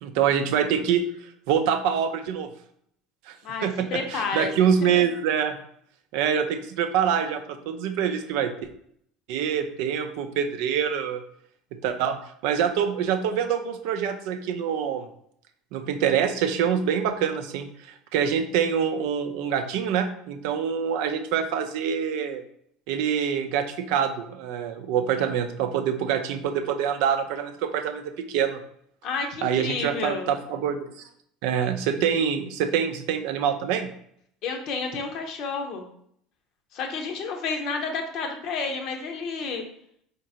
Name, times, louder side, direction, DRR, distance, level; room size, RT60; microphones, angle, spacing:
voice 1, 0.0-1.0 1.5-2.5 3.3-3.4 3.6-5.6 6.1-8.5 9.3-11.2 11.8-12.2 12.4-15.1 15.7-22.4 22.9-28.6 29.4-30.9 31.4-33.9, right 8 dB, 65° right, 7 dB, 0.4 m, -25 dB
voice 2, 3.4-4.5 4.9-5.0 29.0-30.3 34.4-35.9 36.7-39.7, left 4 dB, 55° left, 4 dB, 0.8 m, -30 dB
3.9 x 3.5 x 2.7 m, 0.67 s
hypercardioid pair, 70°, 0 cm